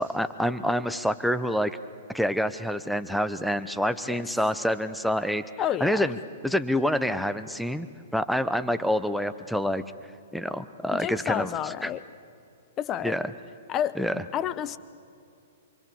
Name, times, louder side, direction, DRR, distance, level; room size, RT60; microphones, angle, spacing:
voice 1, 0.0-1.8 2.1-5.4 5.8-6.2 6.4-7.9 8.1-9.8 10.3-11.5 11.8-11.9 13.0-13.3 14.0-14.2, equal, ahead, 12 dB, 0.9 m, -27 dB
voice 2, 5.6-6.0 10.9-12.0 12.8-13.2 13.7-14.0 14.3-14.8, left 10 dB, 25° left, 15 dB, 0.9 m, -29 dB
27.0 x 24.5 x 7.1 m, 2.5 s
figure-of-eight pair, 115°, 0 cm